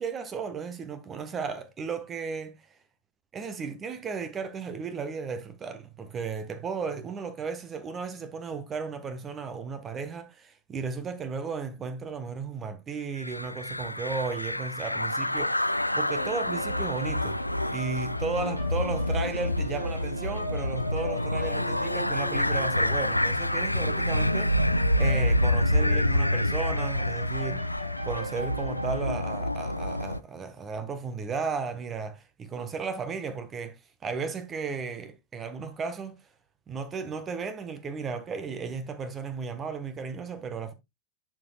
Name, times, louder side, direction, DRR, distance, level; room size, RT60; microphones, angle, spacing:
voice 1, 0.0-2.8 3.3-17.4 17.6-36.2 36.7-40.7, right 5 dB, 25° right, 0.9 m, -35 dB
sound 1, 13.2-30.2, left 1 dB, 85° left, 0.3 m, -27 dB
sound 2, 16.2-29.0, equal, 85° right, 1.7 m, -40 dB
10.5 x 5.2 x 2.3 m
figure-of-eight pair, 90°, 0 cm